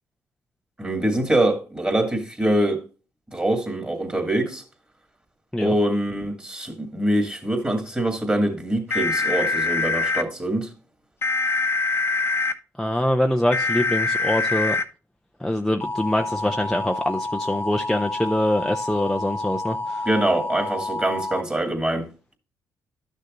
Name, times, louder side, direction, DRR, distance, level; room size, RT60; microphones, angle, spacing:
voice 1, 0.8-2.8 3.3-4.6 5.6-10.7 20.1-22.1, right 1 dB, 15° right, 2.4 m, -24 dB
sound 1, 8.9-10.2 11.2-12.5 13.5-14.8 15.8-21.4, left 3 dB, 35° left, 0.9 m, -26 dB
voice 2, 12.8-14.8 15.4-20.1, left 1 dB, 5° left, 0.6 m, -24 dB
11.5 x 6.5 x 2.6 m
cardioid pair, 75°, 7 cm